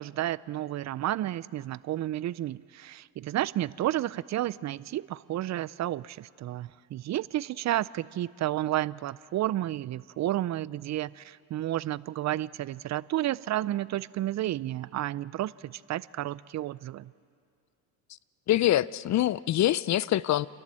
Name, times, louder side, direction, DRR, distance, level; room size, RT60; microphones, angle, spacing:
voice 1, 0.0-17.1, right 14 dB, 40° right, 20 dB, 0.5 m, -31 dB
voice 2, 18.5-20.5, left 13 dB, 45° left, 20 dB, 0.5 m, -24 dB
29.5 x 12.0 x 7.5 m, 2.3 s
supercardioid pair, 90°, 42 cm